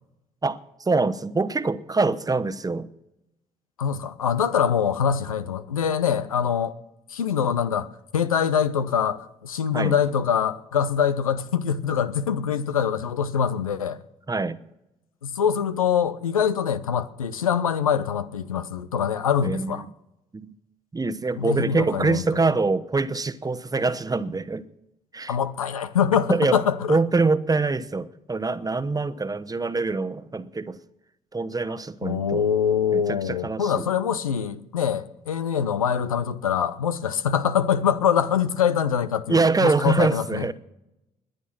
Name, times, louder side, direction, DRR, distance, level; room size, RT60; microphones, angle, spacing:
voice 1, 0.4-2.9 9.7-9.9 14.3-14.6 19.4-19.9 20.3-20.5 20.9-24.7 25.1-25.3 26.3-26.6 26.9-30.8 31.3-32.4 32.9-33.8 39.3-40.5, right 3 dB, 20° right, 1.0 m, -24 dB
voice 2, 3.8-6.8 7.1-7.9 8.1-14.0 15.2-19.9 21.4-22.2 25.3-27.0 32.0-40.5, left 8 dB, 90° left, 0.6 m, -24 dB
21.0 x 8.9 x 6.1 m
figure-of-eight pair, 45°, 17 cm